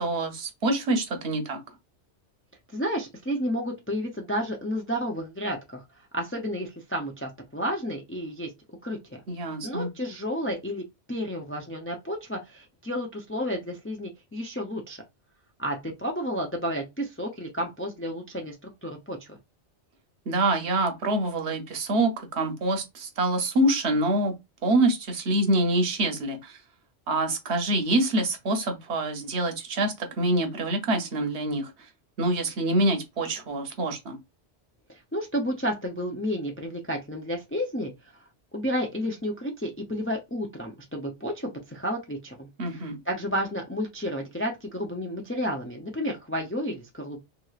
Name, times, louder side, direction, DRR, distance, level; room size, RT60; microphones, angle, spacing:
voice 1, 0.0-1.6 9.3-9.9 20.3-24.3 24.6-26.6 27.1-31.7 32.2-34.2 42.6-43.0, right 1 dB, 70° right, 1.0 m, -26 dB
voice 2, 2.7-5.8 6.1-8.5 8.8-9.2 9.6-15.0 15.6-19.4 34.9-37.9 38.5-47.2, equal, 20° left, 0.3 m, -31 dB
2.9 x 2.9 x 2.3 m
omnidirectional pair, 1.2 m